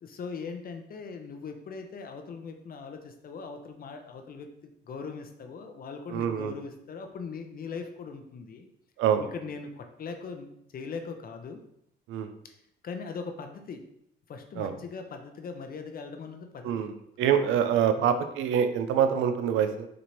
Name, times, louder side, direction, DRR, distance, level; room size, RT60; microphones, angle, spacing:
voice 1, 0.0-8.7 9.2-11.6 12.4-12.5 12.8-13.8 14.3-16.9 18.0-18.2, left 5 dB, 50° left, 6 dB, 0.5 m, -40 dB
voice 2, 6.1-6.5 9.0-9.3 12.1-12.3 14.6-14.7 16.6-19.9, right 8 dB, 85° right, 9 dB, 0.4 m, -25 dB
4.3 x 2.6 x 3.0 m, 0.75 s
cardioid pair, 90°, 20 cm